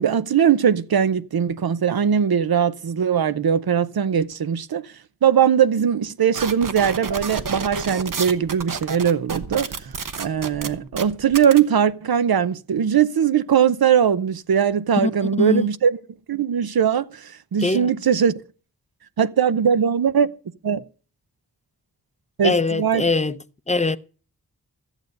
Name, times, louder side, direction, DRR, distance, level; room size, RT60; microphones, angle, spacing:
voice 1, 0.0-16.0 16.3-18.3 19.2-20.3 20.6-20.8 22.4-23.1, right 8 dB, 75° right, 0.7 m, -20 dB
sound 1, 6.3-11.6, right 5 dB, 60° right, 1.1 m, -30 dB
voice 2, 22.4-23.4 23.7-24.0, left 3 dB, 20° left, 0.6 m, -21 dB
14.0 x 8.2 x 5.2 m
wide cardioid pair, 110°, 37 cm